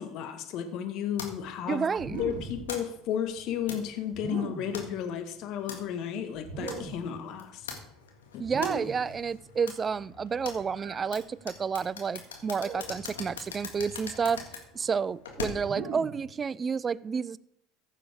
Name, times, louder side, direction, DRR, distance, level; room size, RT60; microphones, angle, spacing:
voice 1, 0.0-1.9 2.2-7.7 8.3-8.4, left 9 dB, 55° left, 1.4 m, -33 dB
sound 1, 1.2-15.9, left 5 dB, 85° left, 1.8 m, -43 dB
voice 2, 1.7-2.2 8.4-14.4 14.7-17.4, right 6 dB, 30° right, 0.4 m, -30 dB
sound 2, 1.9-2.7 4.1-4.8 6.4-7.1 8.4-9.1 10.7-11.1 12.5-13.0 14.1-14.5 15.6-16.3, right 5 dB, 50° right, 2.9 m, -39 dB
15.0 x 7.4 x 3.5 m
hypercardioid pair, 80°, 0 cm